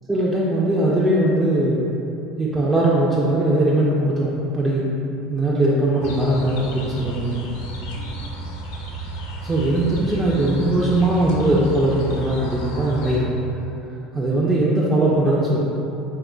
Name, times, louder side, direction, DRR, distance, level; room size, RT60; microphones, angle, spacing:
voice 1, 0.1-1.9 2.4-4.9 5.3-7.5 9.4-13.3 14.1-15.6, right 1 dB, 15° right, -7 dB, 0.4 m, -20 dB
sound 1, 6.0-13.2, right 1 dB, 75° left, 0.4 m, -33 dB
3.7 x 2.9 x 2.2 m, 2.9 s
hypercardioid pair, 90°, 0 cm